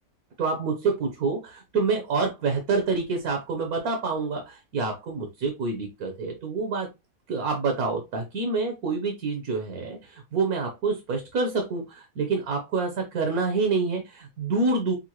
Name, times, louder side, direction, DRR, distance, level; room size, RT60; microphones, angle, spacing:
voice 1, 0.4-6.9 7.3-14.9, right 4 dB, 80° right, 1.5 m, -27 dB
6.7 x 2.2 x 3.0 m
omnidirectional pair, 1.5 m